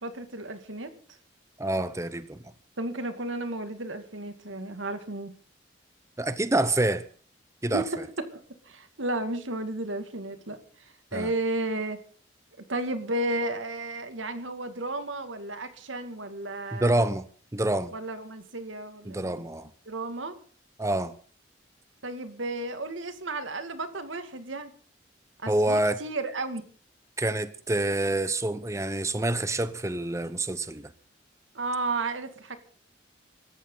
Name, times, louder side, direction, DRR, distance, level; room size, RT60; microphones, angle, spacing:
voice 1, 0.0-0.9 2.8-5.3 7.7-8.4 8.7-10.6 11.1-12.0 12.7-17.0 17.9-19.4 19.9-20.4 22.0-24.7 25.4-26.6 31.5-32.6, right 2 dB, 90° right, 2.3 m, -33 dB
voice 2, 1.6-2.4 6.2-7.1 7.6-7.8 11.1-11.3 16.7-17.2 17.5-17.9 19.1-19.7 20.8-21.2 25.5-26.0 27.2-30.9, right 1 dB, 15° right, 0.8 m, -27 dB
25.5 x 14.0 x 4.0 m
head